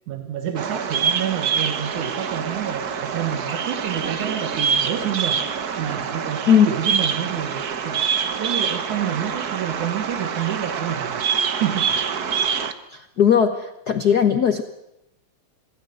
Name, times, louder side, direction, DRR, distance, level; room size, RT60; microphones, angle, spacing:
voice 1, 0.1-12.1, right 9 dB, 85° right, 5 dB, 3.0 m, -29 dB
Bird vocalization bird call bird song, 0.6-12.7, right 7 dB, 65° right, 0.9 m, -25 dB
voice 2, 12.9-14.6, left 8 dB, 85° left, 8 dB, 0.8 m, -18 dB
26.0 x 17.0 x 7.9 m, 0.87 s
omnidirectional pair, 3.4 m